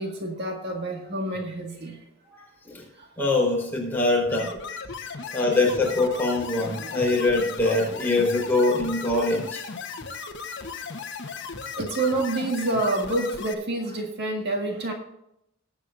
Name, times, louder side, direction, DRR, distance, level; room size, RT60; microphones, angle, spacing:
voice 1, 0.0-2.0 6.8-6.9 11.7-14.9, right 2 dB, 50° right, 1 dB, 1.8 m, -28 dB
voice 2, 2.3-2.8 3.2-4.6 5.3-9.6, left 2 dB, 10° left, -2 dB, 3.8 m, -23 dB
sound 1, 4.3-13.5, left 5 dB, 55° left, 1.1 m, -37 dB
19.0 x 8.3 x 2.5 m, 0.80 s
head